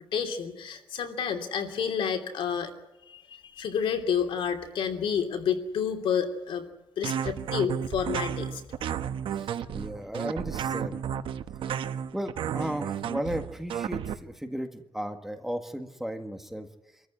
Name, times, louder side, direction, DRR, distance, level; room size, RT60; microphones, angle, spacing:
voice 1, 0.1-2.7 3.1-6.6 7.0-8.6, left 7 dB, 85° left, 5 dB, 2.9 m, -29 dB
sound 1, 7.0-14.1, right 9 dB, 85° right, 1.1 m, -32 dB
voice 2, 9.3-11.0 12.1-16.7, equal, 5° right, 6 dB, 1.7 m, -35 dB
26.5 x 14.0 x 9.9 m, 0.99 s
wide cardioid pair, 160°, 9 cm